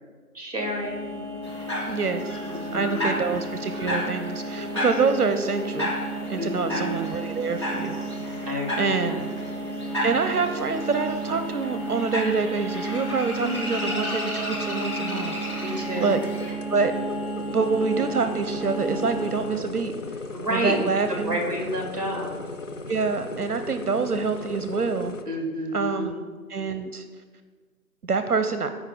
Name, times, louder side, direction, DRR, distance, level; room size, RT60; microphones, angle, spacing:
voice 1, 0.3-1.2 2.5-3.2 6.3-7.0 8.4-9.2 13.3-13.7 15.6-16.1 20.3-20.7 21.3-22.3 25.2-26.2, equal, 25° right, 1 dB, 1.5 m, -30 dB
sound 1, 0.6-19.5, right 2 dB, 40° left, 2.8 m, -33 dB
sound 2, 1.4-16.5, left 1 dB, 20° left, 1.2 m, -33 dB
voice 2, 1.9-2.4 2.7-8.0 8.2-8.5 8.8-9.2 10.0-16.2 16.7-16.9 17.5-19.9 20.5-21.4 22.9-25.1 25.7-26.2 26.5-27.0 28.0-28.7, right 4 dB, 75° right, 9 dB, 0.6 m, -26 dB
sound 3, 16.1-25.2, left 3 dB, 55° left, 0.7 m, -37 dB
13.5 x 4.9 x 3.6 m, 1.5 s
figure-of-eight pair, 160°, 46 cm